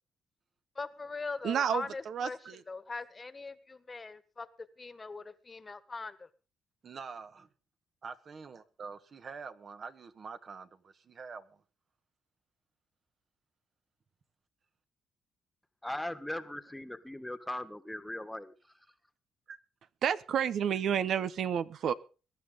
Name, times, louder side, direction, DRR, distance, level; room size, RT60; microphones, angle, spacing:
voice 1, 0.7-4.5 4.8-6.3, left 3 dB, 30° left, 1.6 m, -41 dB
voice 2, 1.4-2.6 20.0-21.9, right 8 dB, 65° right, 0.8 m, -30 dB
voice 3, 6.8-7.5 8.0-11.6 19.5-19.6, right 5 dB, 45° right, 1.6 m, -46 dB
voice 4, 15.8-18.5, left 1 dB, 5° left, 1.6 m, -39 dB
22.0 x 11.5 x 3.9 m
cardioid pair, 90°, 0 cm